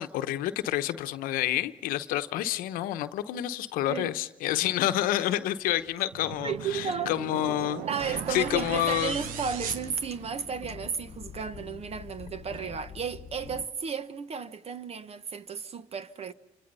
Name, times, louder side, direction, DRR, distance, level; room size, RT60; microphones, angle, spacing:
voice 1, 0.0-7.8 8.3-9.2, left 13 dB, 80° left, 0.9 m, -28 dB
sound 1, 5.2-11.0, left 1 dB, 5° left, 3.5 m, -55 dB
sound 2, 6.1-10.7, right 9 dB, 80° right, 1.1 m, -39 dB
voice 2, 6.4-7.1 7.9-16.3, right 6 dB, 45° right, 1.2 m, -33 dB
sound 3, 8.0-13.7, left 7 dB, 50° left, 1.1 m, -45 dB
28.0 x 25.0 x 5.5 m
supercardioid pair, 70°, 14 cm